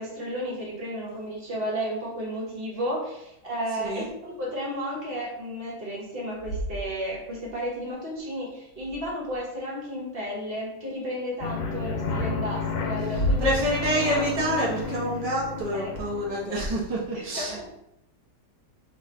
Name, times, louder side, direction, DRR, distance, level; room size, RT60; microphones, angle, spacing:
voice 1, 0.0-13.5 15.7-15.9 17.1-17.6, equal, 35° right, -4 dB, 1.1 m, -33 dB
voice 2, 3.8-4.1 13.1-17.7, right 1 dB, 75° right, -5 dB, 0.3 m, -27 dB
sound 1, 6.2-7.6 8.7-9.4 11.5-11.7 13.0-15.0, equal, 30° left, 1.0 m, -33 dB
sound 2, 11.4-16.5, left 4 dB, 80° left, 1.4 m, -32 dB
3.1 x 3.0 x 4.4 m, 0.82 s
omnidirectional pair, 2.2 m